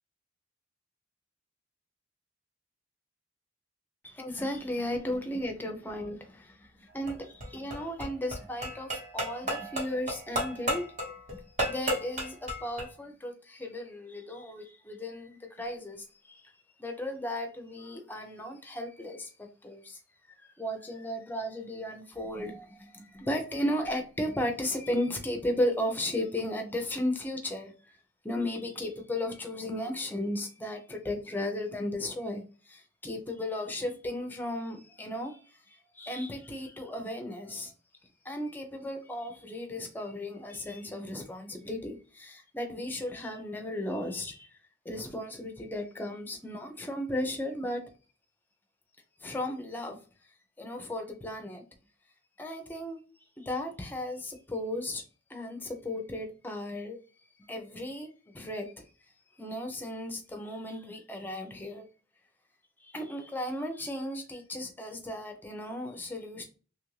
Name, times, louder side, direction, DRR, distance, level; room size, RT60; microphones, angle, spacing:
voice 1, 4.0-10.9 11.3-16.5 16.8-20.0 20.3-28.0 28.2-37.7 38.2-44.5 44.8-47.8 49.2-50.0 50.6-51.6 52.4-53.0 53.4-55.0 55.3-57.0 57.4-58.9 59.4-61.9 62.8-66.4, left 1 dB, 10° left, 0.5 m, -35 dB
sound 1, 6.9-12.9, right 1 dB, 35° right, 1.0 m, -34 dB
3.0 x 2.5 x 3.1 m
head